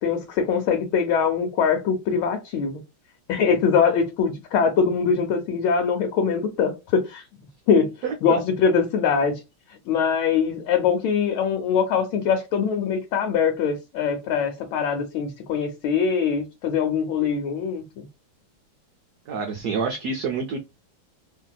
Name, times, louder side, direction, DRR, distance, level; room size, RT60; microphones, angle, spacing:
voice 1, 0.0-2.8 3.3-7.2 7.7-7.9 8.2-9.4 9.9-18.1, left 6 dB, 85° left, 1.5 m, -22 dB
voice 2, 8.0-8.4 19.3-20.6, right 5 dB, 75° right, 0.9 m, -27 dB
3.2 x 2.6 x 2.2 m
omnidirectional pair, 2.2 m